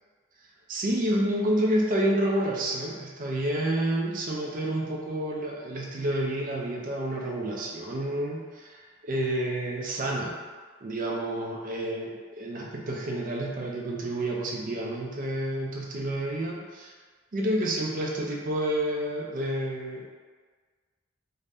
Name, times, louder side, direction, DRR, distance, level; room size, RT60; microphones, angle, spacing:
voice 1, 0.7-10.4 10.8-16.9 17.3-20.1, right 1 dB, 40° right, -2 dB, 0.4 m, -29 dB
2.6 x 2.1 x 3.3 m, 1.5 s
head